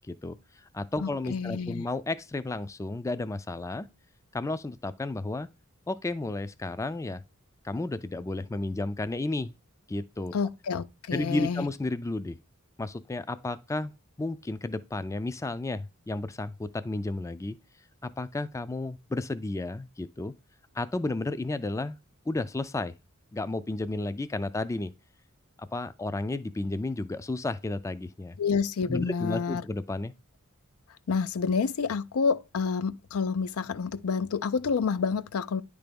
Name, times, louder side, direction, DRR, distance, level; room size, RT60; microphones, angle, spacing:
voice 1, 0.1-0.4 0.7-3.9 4.3-5.5 5.9-7.2 7.6-9.5 9.9-10.3 11.1-12.4 12.8-13.9 14.2-17.6 18.0-20.3 20.7-22.0 22.3-22.9 23.3-24.9 25.6-28.4 28.9-30.1, left 2 dB, 15° left, 0.3 m, -32 dB
voice 2, 1.0-1.9 10.3-11.7 28.4-29.6 31.1-35.6, left 5 dB, 80° left, 0.4 m, -29 dB
9.8 x 3.4 x 5.2 m
head